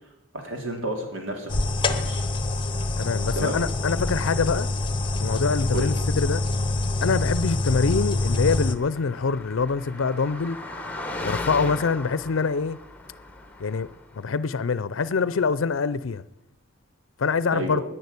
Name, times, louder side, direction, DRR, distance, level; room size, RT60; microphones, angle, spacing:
voice 1, 0.3-2.3 3.3-3.6 5.7-5.9 17.5-17.8, right 1 dB, 85° right, 3.2 m, -31 dB
sound 1, 1.5-8.8, left 2 dB, 25° left, 0.9 m, -25 dB
voice 2, 3.0-4.7 5.2-6.4 7.0-10.6 11.2-12.8 13.6-13.9 14.2-16.2 17.2-17.8, left 5 dB, 85° left, 0.5 m, -25 dB
Car passing by, 8.2-14.2, left 2 dB, 10° left, 1.2 m, -37 dB
11.0 x 10.0 x 9.6 m
head